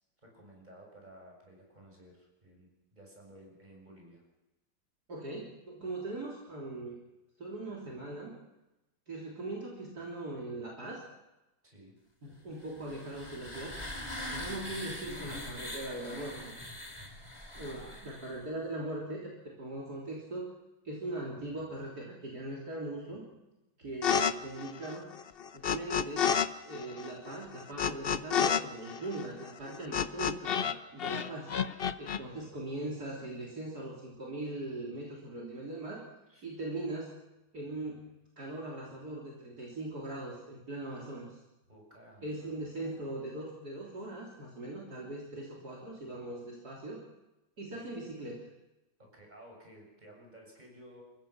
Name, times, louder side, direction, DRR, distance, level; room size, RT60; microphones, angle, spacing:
voice 1, 0.2-4.2 11.6-12.0 17.6-18.0 36.3-36.5 41.7-42.5 47.7-47.9 49.1-51.0, right 1 dB, 20° right, 0 dB, 7.1 m, -54 dB
voice 2, 5.1-7.0 7.4-8.3 9.1-11.0 12.2-13.8 14.3-16.4 17.5-20.5 20.8-23.2 23.8-25.1 25.5-26.3 26.7-31.5 32.0-36.0 36.4-37.1 37.5-38.1 38.4-41.4 42.2-47.0 47.6-48.4, right 2 dB, 50° right, -2 dB, 3.9 m, -40 dB
sound 1, 12.6-18.4, left 1 dB, 15° left, 2.7 m, -42 dB
sound 2, 24.0-24.3 24.6-26.5 26.7-30.7 31.0-32.2, left 7 dB, 85° left, 0.5 m, -30 dB
29.5 x 15.5 x 6.0 m, 0.96 s
omnidirectional pair, 2.2 m